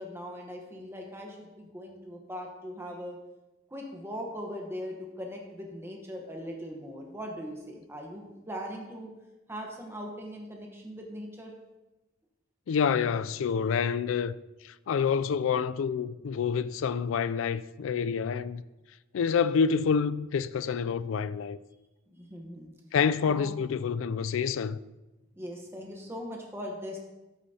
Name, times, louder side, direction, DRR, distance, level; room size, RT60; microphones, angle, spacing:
voice 1, 0.0-3.2 3.7-9.1 9.5-11.5 22.2-22.7 23.2-23.5 25.4-27.0, equal, 10° right, 1.1 m, -40 dB
voice 2, 12.7-14.3 14.6-18.6 19.1-21.6 22.9-24.8, left 6 dB, 75° left, 0.3 m, -27 dB
12.5 x 8.7 x 2.8 m
head